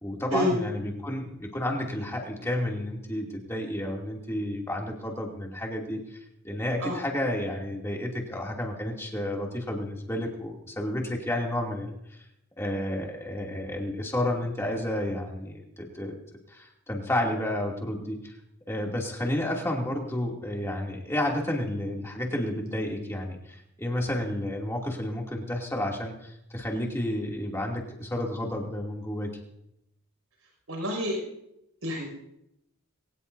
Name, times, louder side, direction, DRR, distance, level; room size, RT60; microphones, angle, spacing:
voice 1, 0.0-12.2 12.6-16.1 16.5-18.3 18.7-29.3, left 1 dB, 10° left, -1 dB, 2.7 m, -31 dB
voice 2, 30.7-31.2 31.8-32.1, left 1 dB, 90° right, 1 dB, 6.1 m, -28 dB
22.5 x 18.5 x 2.7 m, 0.80 s
head